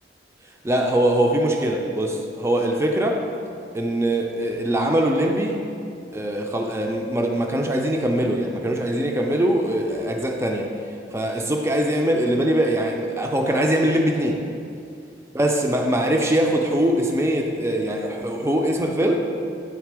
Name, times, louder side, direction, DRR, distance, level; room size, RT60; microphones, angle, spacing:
voice 1, 0.6-3.2 3.7-5.6 6.1-10.7 11.1-14.4 15.3-19.2, right 1 dB, 15° right, 2 dB, 0.4 m, -22 dB
9.4 x 3.7 x 4.7 m, 2.5 s
head